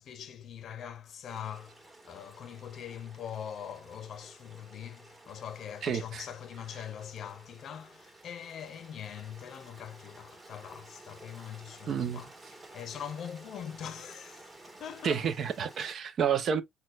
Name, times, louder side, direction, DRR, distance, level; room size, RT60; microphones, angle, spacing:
voice 1, 0.0-15.5, left 9 dB, 65° left, 0.6 m, -43 dB
Stream, 1.3-15.9, right 2 dB, 30° right, 1.6 m, -53 dB
voice 2, 5.8-6.3 11.9-12.3 15.0-16.6, right 7 dB, 65° right, 0.6 m, -30 dB
4.2 x 2.2 x 2.3 m
cardioid pair, 90°, 0 cm